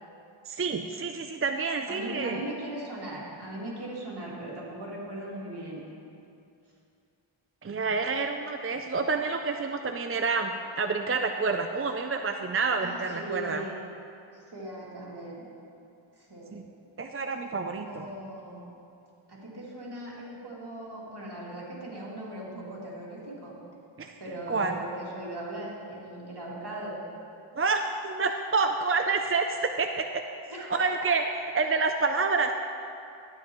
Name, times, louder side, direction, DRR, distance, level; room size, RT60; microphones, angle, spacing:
voice 1, 0.5-2.4 7.6-13.6 16.5-16.6 17.0-18.1 24.0-24.1 24.5-24.8 27.6-30.2 30.7-31.2 31.5-32.5, right 4 dB, 30° right, 5 dB, 0.4 m, -28 dB
voice 2, 1.9-5.8 12.8-13.7 14.3-15.5 16.1-16.6 17.1-17.2 17.8-18.7 19.3-23.6 24.2-27.0 30.5-31.1, right 1 dB, 55° right, -6 dB, 2.4 m, -39 dB
12.5 x 9.5 x 3.0 m, 2.6 s
wide cardioid pair, 50°, 49 cm